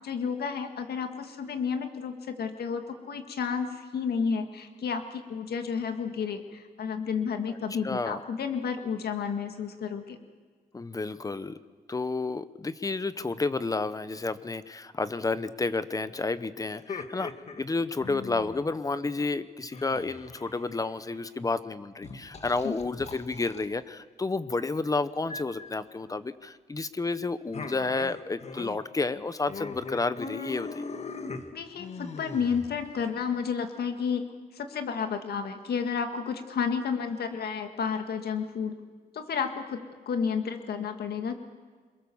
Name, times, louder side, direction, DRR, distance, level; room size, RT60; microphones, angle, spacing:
voice 1, 0.0-10.2 22.6-22.7 31.5-34.2 34.5-38.8 39.1-41.3, left 6 dB, 80° left, 6 dB, 2.0 m, -31 dB
voice 2, 7.8-8.2 10.7-11.6 11.9-17.3 17.6-30.8, left 3 dB, 20° left, 13 dB, 0.8 m, -31 dB
sound 1, 16.7-18.7 19.7-21.1 22.0-23.7 25.3-25.7 27.5-28.8 29.1-29.2 29.5-33.1, left 4 dB, 45° left, 1.6 m, -40 dB
27.0 x 23.0 x 7.2 m, 1.5 s
wide cardioid pair, 155°, 16 cm